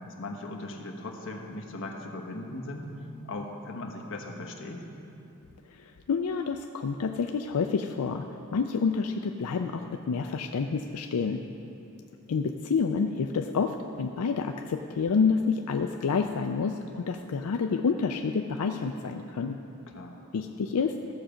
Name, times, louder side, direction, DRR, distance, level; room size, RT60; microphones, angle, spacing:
voice 1, 0.0-2.9 3.3-4.8 19.9-20.2, left 2 dB, 60° left, 2 dB, 1.1 m, -38 dB
voice 2, 6.1-8.2 8.5-11.4 12.3-19.6 20.3-20.9, left 5 dB, 90° left, 5 dB, 0.4 m, -28 dB
14.0 x 7.0 x 5.0 m, 2.9 s
head